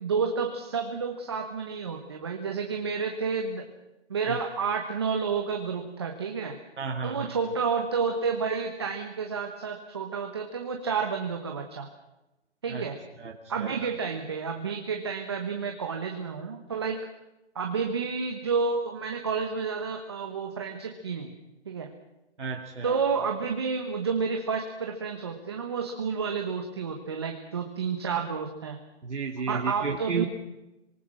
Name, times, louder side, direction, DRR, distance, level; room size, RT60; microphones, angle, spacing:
voice 1, 0.0-3.7 4.1-6.6 7.0-11.9 12.6-13.0 13.5-17.0 17.5-21.3 21.6-21.9 22.8-28.8 29.5-30.2, right 5 dB, 20° right, 3 dB, 1.2 m, -30 dB
voice 2, 6.8-7.4 12.7-12.9 13.2-13.7 22.4-23.0 29.0-30.3, right 5 dB, 80° right, 0 dB, 2.9 m, -33 dB
26.0 x 19.5 x 6.1 m, 0.97 s
hypercardioid pair, 175°, 34 cm